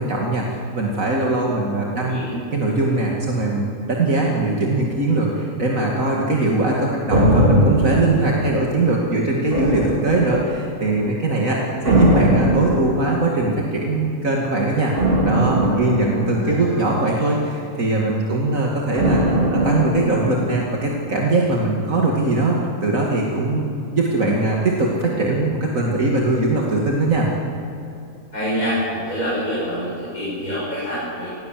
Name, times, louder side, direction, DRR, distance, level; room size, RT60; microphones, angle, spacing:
voice 1, 0.0-2.2 2.5-14.9 15.2-27.3, right 2 dB, 70° right, -2 dB, 2.8 m, -21 dB
voice 2, 1.9-2.3 16.4-16.6 17.0-17.3 28.3-31.3, equal, 75° left, -9 dB, 8.5 m, -26 dB
sound 1, 7.1-9.0 9.5-10.8 11.8-13.6 15.0-17.4 19.0-21.1 21.4-21.5, right 1 dB, 40° right, 2.5 m, -20 dB
29.0 x 19.5 x 7.7 m, 2.7 s
omnidirectional pair, 1.5 m